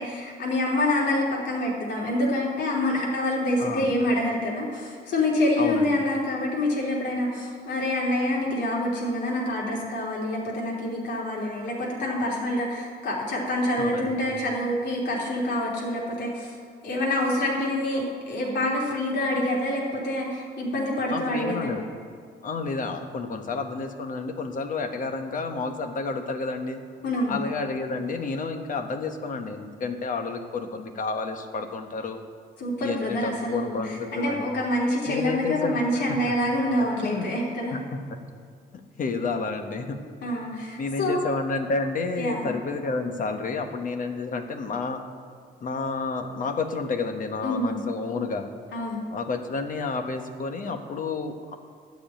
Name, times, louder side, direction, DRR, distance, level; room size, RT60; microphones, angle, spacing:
voice 1, 0.0-16.5 16.8-21.7 27.0-27.4 32.6-37.8 40.2-41.2 42.2-42.4 47.4-47.8 48.7-49.0, left 1 dB, 70° left, -4 dB, 3.1 m, -26 dB
voice 2, 5.6-6.0 13.8-14.2 21.1-21.8 22.4-26.8 27.3-32.2 32.8-34.4 35.1-35.8 36.3-36.4 36.8-37.3 37.7-37.8 38.9-40.0 40.8-45.0 45.6-48.5 49.1-51.5, left 4 dB, 45° left, 6 dB, 1.1 m, -30 dB
12.5 x 5.3 x 8.9 m, 2.1 s
cardioid pair, 110°, 19 cm